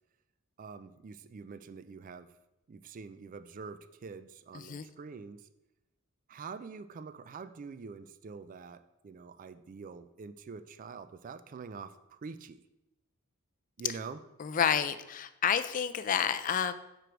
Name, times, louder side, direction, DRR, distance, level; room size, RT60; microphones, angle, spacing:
voice 1, 0.6-2.3 2.7-5.5 6.3-12.6 13.8-14.2, right 5 dB, 40° right, 13 dB, 0.3 m, -45 dB
voice 2, 4.5-4.9 14.4-16.7, left 8 dB, 40° left, 11 dB, 0.4 m, -29 dB
5.0 x 4.6 x 6.0 m, 0.93 s
head